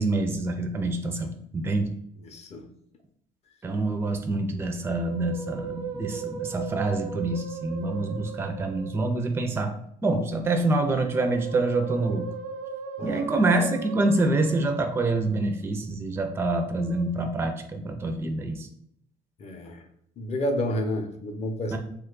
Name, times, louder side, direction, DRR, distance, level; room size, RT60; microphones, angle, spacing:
voice 1, 0.0-2.0 3.6-9.8 10.0-12.3 13.0-18.7 21.7-21.8, right 2 dB, 15° right, 5 dB, 0.4 m, -26 dB
voice 2, 2.2-2.6 13.0-13.4 19.4-19.8 20.2-21.8, left 1 dB, 40° left, 5 dB, 0.5 m, -30 dB
Musical instrument, 4.7-9.4 10.7-15.5 16.6-17.0, right 6 dB, 90° right, 0.4 m, -38 dB
2.9 x 2.2 x 3.7 m, 0.72 s
cardioid pair, 110°, 17 cm